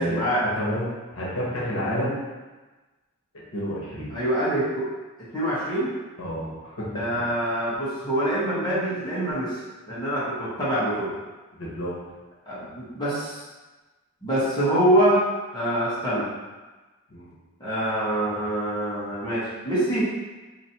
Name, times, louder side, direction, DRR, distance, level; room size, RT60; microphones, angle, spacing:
voice 1, 0.0-0.4 4.1-4.9 5.3-5.9 6.9-9.5 9.9-11.1 12.5-13.4 14.2-15.2 15.5-16.3 17.6-20.1, right 1 dB, 20° left, -10 dB, 1.2 m, -25 dB
voice 2, 0.5-2.2 3.5-4.1 6.2-7.2 11.6-11.9 17.1-17.3, equal, 65° left, -6 dB, 1.1 m, -30 dB
4.9 x 2.7 x 2.8 m, 1.2 s
head